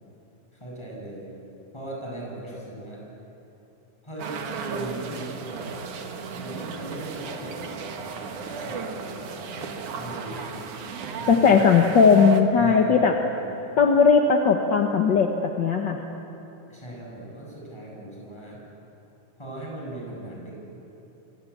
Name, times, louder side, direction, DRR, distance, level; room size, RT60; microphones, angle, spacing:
voice 1, 0.5-1.3 1.7-3.0 4.0-5.7 6.4-11.9 12.5-13.6 16.7-18.6 19.4-20.5, right 1 dB, 10° left, -3 dB, 7.7 m, -38 dB
sound 1, 4.2-12.4, right 5 dB, 70° right, 3.1 m, -35 dB
voice 2, 11.3-13.1 13.8-16.0, left 5 dB, 50° left, 3 dB, 1.4 m, -18 dB
27.0 x 25.0 x 8.7 m, 3.0 s
omnidirectional pair, 3.7 m